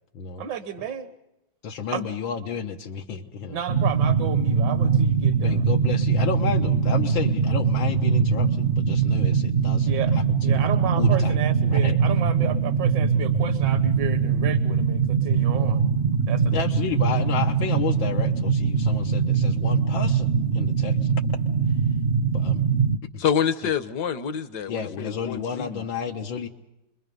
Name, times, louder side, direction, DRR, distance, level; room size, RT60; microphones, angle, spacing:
voice 1, 0.4-1.1 1.9-2.1 3.5-5.6 9.9-10.2 10.4-15.8 16.3-16.7, right 9 dB, 70° right, 1.7 m, -32 dB
voice 2, 1.6-3.6 5.4-10.7 11.0-11.4 11.7-12.0 16.5-21.1 21.7-21.8 22.3-22.6 23.1-23.2 23.6-23.7 24.7-26.5, left 7 dB, 85° left, 1.9 m, -32 dB
sound 1, 3.7-23.0, right 6 dB, 50° right, 0.7 m, -22 dB
voice 3, 23.2-25.9, left 7 dB, 60° left, 1.5 m, -27 dB
29.5 x 22.0 x 5.4 m
omnidirectional pair, 2.1 m